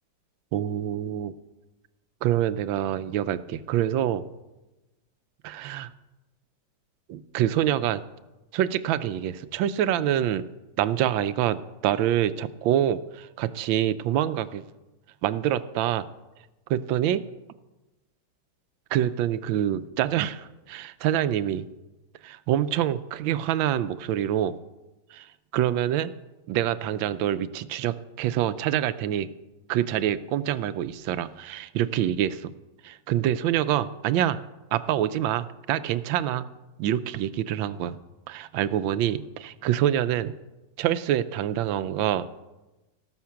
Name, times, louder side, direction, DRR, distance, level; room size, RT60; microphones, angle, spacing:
voice 1, 0.5-1.3 2.2-4.2 5.4-5.9 7.1-8.0 8.5-10.5 10.8-14.6 15.2-16.1 16.7-17.2 18.9-21.7 22.2-24.5 25.1-25.2 25.5-26.1 26.5-29.3 29.7-32.5 32.8-34.4 34.7-36.5 36.8-38.0 38.3-40.3 40.8-42.3, right 11 dB, 90° right, 13 dB, 1.4 m, -26 dB
18.0 x 6.5 x 5.8 m, 1.1 s
omnidirectional pair, 2.1 m